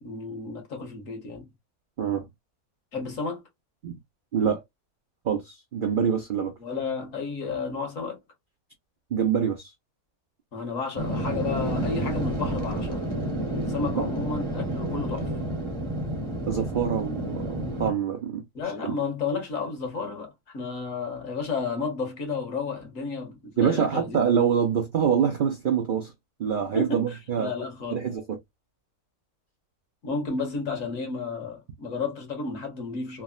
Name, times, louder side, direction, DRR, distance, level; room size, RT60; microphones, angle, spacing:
voice 1, 0.0-1.5 2.9-3.4 6.6-8.2 10.5-13.1 13.5-15.3 18.5-24.2 26.7-27.0 27.4-28.0 30.0-33.2, left 4 dB, 65° left, 1.5 m, -32 dB
voice 2, 4.3-4.6 5.2-6.5 9.1-9.7 14.0-14.1 16.5-18.4 18.8-18.9 23.6-26.1 26.4-27.5 27.9-28.4, right 7 dB, 75° right, 0.4 m, -25 dB
sound 1, 10.9-17.9, right 1 dB, 30° right, 0.6 m, -30 dB
3.4 x 2.0 x 2.3 m
omnidirectional pair, 1.5 m